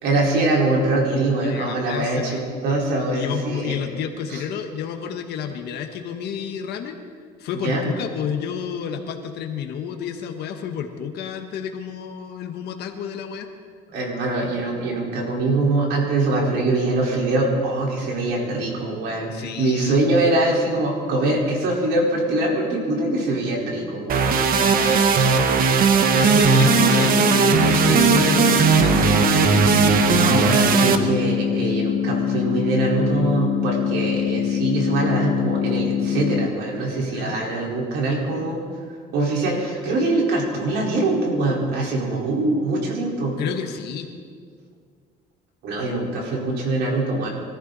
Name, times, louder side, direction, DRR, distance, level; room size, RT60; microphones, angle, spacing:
voice 1, 0.0-3.8 4.3-4.4 7.5-7.9 13.9-24.3 29.8-38.6 39.1-43.3 45.6-47.3, right 2 dB, 80° right, -2 dB, 4.6 m, -23 dB
voice 2, 1.4-2.4 3.1-7.0 7.4-13.5 19.3-20.0 24.5-25.5 26.1-29.1 37.0-37.4 43.4-44.1, left 8 dB, 75° left, 5 dB, 1.4 m, -30 dB
sound 1, 24.1-31.0, right 6 dB, 60° right, 1.2 m, -17 dB
sound 2, 26.5-36.5, left 8 dB, 55° left, 1.9 m, -24 dB
24.5 x 14.0 x 4.2 m, 2.1 s
cardioid pair, 110°, 17 cm